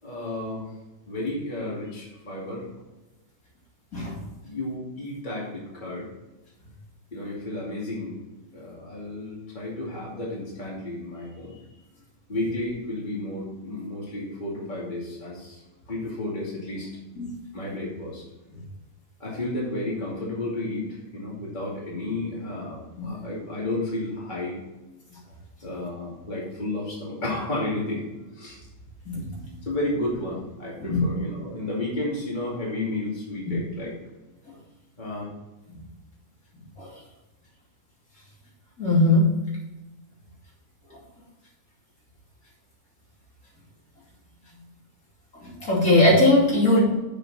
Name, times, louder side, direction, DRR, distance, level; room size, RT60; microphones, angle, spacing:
voice 1, 0.0-0.7 1.1-2.7 4.4-6.1 7.1-8.2 8.5-11.6 12.3-15.6 15.9-16.9 17.5-18.2 19.2-24.6 25.6-28.1 28.3-28.6 29.6-33.9 35.0-35.2, left 2 dB, 30° left, -5 dB, 2.7 m, -32 dB
voice 2, 29.0-29.5 30.9-31.0 35.7-35.8 36.8-36.9 38.8-39.3 45.4-46.8, left 2 dB, 60° left, -5 dB, 3.3 m, -20 dB
8.0 x 7.4 x 4.2 m, 1.1 s
omnidirectional pair, 1.6 m